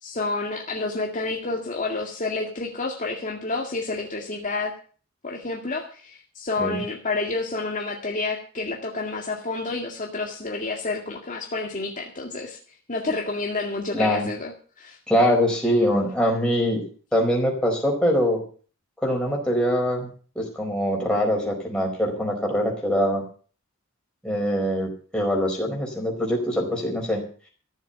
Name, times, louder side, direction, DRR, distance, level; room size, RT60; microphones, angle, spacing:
voice 1, 0.0-4.7 5.2-12.6 12.9-15.0, left 3 dB, 40° left, 0 dB, 2.0 m, -29 dB
voice 2, 13.9-14.3 15.1-16.8 17.1-18.4 19.0-23.2 24.2-27.2, equal, 5° left, -2 dB, 4.8 m, -23 dB
14.5 x 7.5 x 8.0 m, 0.41 s
head